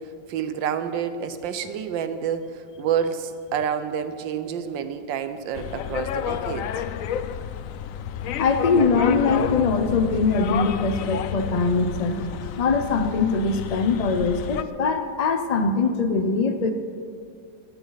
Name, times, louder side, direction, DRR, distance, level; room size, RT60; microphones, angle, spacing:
voice 1, 0.0-6.8, right 8 dB, 75° right, 10 dB, 1.5 m, -29 dB
sound 1, 5.5-14.6, left 9 dB, 90° left, 0.7 m, -30 dB
voice 2, 8.4-12.2 12.6-16.7, left 4 dB, 55° left, 7 dB, 0.4 m, -22 dB
17.0 x 13.5 x 4.1 m, 2.4 s
omnidirectional pair, 2.0 m